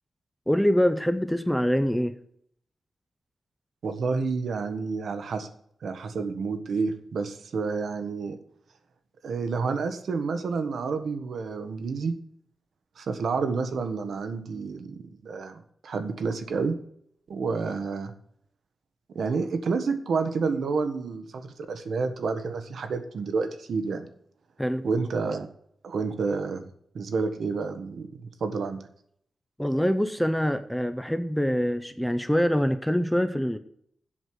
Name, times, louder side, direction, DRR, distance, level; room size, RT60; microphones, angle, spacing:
voice 1, 0.5-2.1 24.6-24.8 29.6-33.6, equal, ahead, 9 dB, 0.5 m, -24 dB
voice 2, 3.8-5.5 5.8-8.4 9.2-12.2 13.0-16.8 17.3-18.1 19.1-24.1 24.8-25.5 25.8-26.6 26.9-28.8, right 4 dB, 70° right, 9 dB, 1.2 m, -29 dB
7.9 x 6.3 x 7.7 m, 0.68 s
wide cardioid pair, 170°, 0 cm